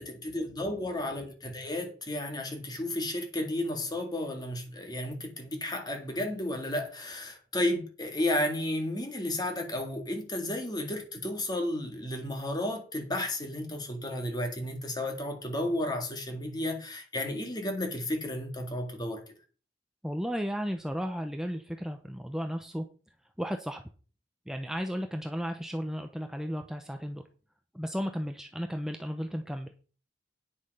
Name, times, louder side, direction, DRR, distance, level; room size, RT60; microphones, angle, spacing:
voice 1, 0.0-19.2, left 1 dB, 20° left, 2.0 m, -33 dB
voice 2, 20.0-22.9 23.4-23.8 24.5-27.3 27.7-29.8, equal, 5° right, 0.7 m, -34 dB
9.8 x 6.9 x 5.5 m
head